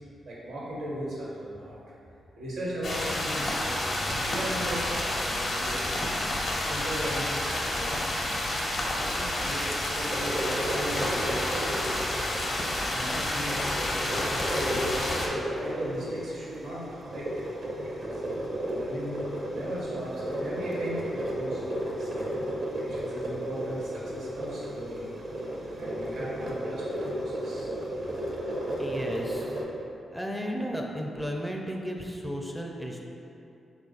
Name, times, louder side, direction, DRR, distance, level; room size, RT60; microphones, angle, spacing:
voice 1, 0.2-1.8 2.4-6.0 6.6-8.4 8.9-11.9 12.8-15.1 15.6-18.2 18.6-21.6 22.0-22.3 22.8-25.1 25.8-26.8 27.1-27.7, right 1 dB, 90° right, -6 dB, 1.1 m, -38 dB
sound 1, 2.8-15.3, left 1 dB, 55° left, 0.7 m, -29 dB
sound 2, 10.1-29.6, right 1 dB, 60° right, 0.5 m, -34 dB
voice 2, 28.8-29.6 30.1-33.0, equal, ahead, 0 dB, 0.4 m, -34 dB
3.7 x 2.4 x 3.8 m, 2.8 s
cardioid pair, 65°, 0 cm